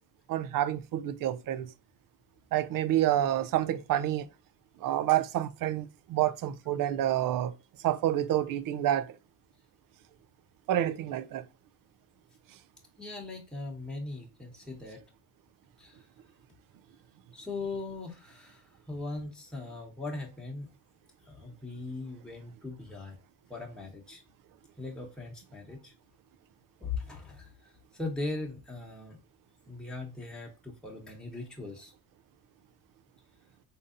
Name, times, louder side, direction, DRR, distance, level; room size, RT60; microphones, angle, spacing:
voice 1, 0.3-1.7 2.5-4.3 4.8-7.5 7.8-9.1 10.7-11.5, right 12 dB, 55° right, 0.5 m, -28 dB
voice 2, 13.0-15.0 15.8-16.0 17.3-20.7 21.3-23.2 23.5-24.2 24.8-25.9 26.8-27.5 27.9-29.2 29.7-31.9, left 3 dB, ahead, 1.1 m, -39 dB
3.7 x 2.8 x 2.5 m
cardioid pair, 100°, 40 cm